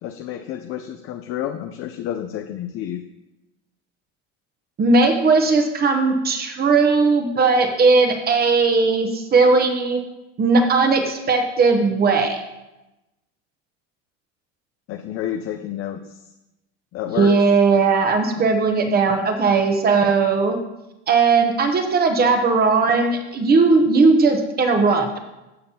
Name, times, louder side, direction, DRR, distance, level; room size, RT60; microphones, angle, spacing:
voice 1, 0.0-3.0 14.9-16.3 16.9-17.3, left 10 dB, 40° left, 6 dB, 0.5 m, -30 dB
voice 2, 4.8-10.0 10.4-12.4 17.2-20.6 21.1-25.2, right 4 dB, 25° right, 5 dB, 0.9 m, -18 dB
14.5 x 5.2 x 2.8 m, 0.97 s
supercardioid pair, 120°, 34 cm